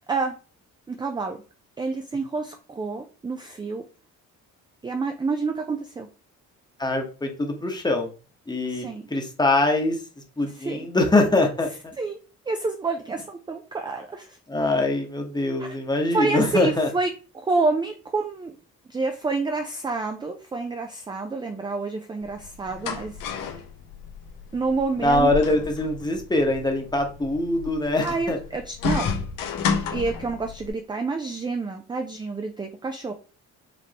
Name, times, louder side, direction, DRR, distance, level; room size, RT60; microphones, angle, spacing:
voice 1, 0.9-1.4 1.8-3.8 4.8-6.1 8.7-9.1 10.5-10.9 12.0-12.2 12.5-14.4 15.6-15.8 16.1-18.6 18.9-23.5 24.5-25.3 28.0-29.1 29.9-33.1, right 3 dB, 15° right, 5 dB, 0.4 m, -28 dB
voice 2, 6.8-8.1 8.5-10.0 10.4-11.9 14.5-16.9 25.0-28.4, left 2 dB, 15° left, 3 dB, 1.0 m, -23 dB
sound 1, 22.2-30.7, left 6 dB, 75° left, 0.9 m, -31 dB
5.1 x 3.2 x 2.8 m, 0.35 s
cardioid pair, 135°, 33 cm